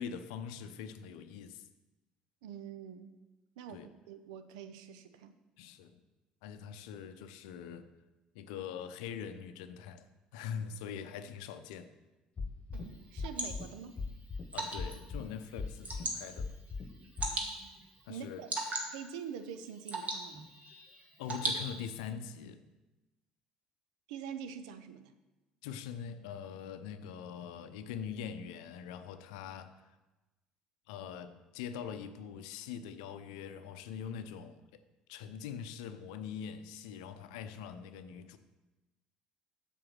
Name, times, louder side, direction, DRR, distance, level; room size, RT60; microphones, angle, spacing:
voice 1, 0.0-1.7 3.7-3.9 5.6-6.0 6.4-7.9 8.3-11.9 14.5-16.6 18.1-18.4 21.2-22.6 25.6-29.8 30.9-34.8 35.1-38.4, left 7 dB, 70° left, 10 dB, 0.6 m, -43 dB
voice 2, 2.4-3.1 3.6-5.3 12.7-14.0 17.2-17.7 18.1-18.5 18.9-20.5 24.1-25.1, right 7 dB, 70° right, 10 dB, 0.7 m, -45 dB
sound 1, 12.4-12.8 13.2-13.6 14.0-14.4 14.8-15.2 15.6-16.0 16.4-16.8 17.2-17.3, left 4 dB, 30° left, 1.4 m, -37 dB
Water / Drip, 12.7-22.1, right 2 dB, 35° right, 1.9 m, -41 dB
7.7 x 6.8 x 6.0 m, 1.1 s
figure-of-eight pair, 55°, 4 cm